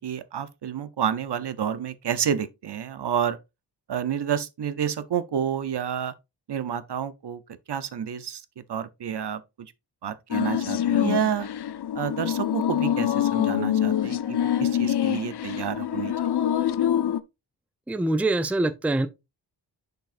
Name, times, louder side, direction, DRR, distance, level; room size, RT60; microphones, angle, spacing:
voice 1, 0.0-3.4 3.9-6.1 6.5-7.4 7.7-9.7 10.0-11.5 11.9-16.1, right 8 dB, 65° right, 0.8 m, -29 dB
sound 1, 10.3-17.2, left 10 dB, 65° left, 0.6 m, -25 dB
voice 2, 17.9-19.1, right 2 dB, 5° right, 0.5 m, -24 dB
6.6 x 6.3 x 2.5 m
wide cardioid pair, 115°, 44 cm